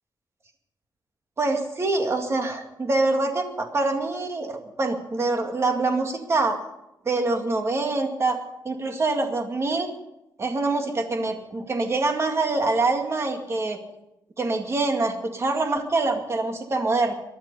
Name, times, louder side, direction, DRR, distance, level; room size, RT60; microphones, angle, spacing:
voice 1, 1.4-6.6 7.1-8.4 8.6-9.9 10.4-13.8 14.4-17.1, right 3 dB, 35° right, 4 dB, 2.1 m, -25 dB
23.0 x 11.0 x 5.5 m, 0.88 s
wide cardioid pair, 155°, 8 cm